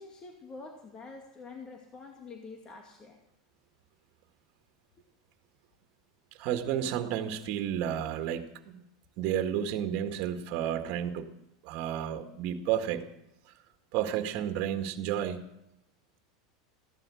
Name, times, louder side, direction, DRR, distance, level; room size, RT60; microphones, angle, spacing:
voice 1, 0.0-3.2 10.9-11.0, left 4 dB, 30° left, 3 dB, 2.3 m, -46 dB
voice 2, 6.4-8.8 9.2-11.3 11.6-13.0 13.9-15.4, right 10 dB, 55° right, 7 dB, 1.9 m, -31 dB
15.5 x 12.0 x 6.4 m, 0.83 s
supercardioid pair, 115°, 3 cm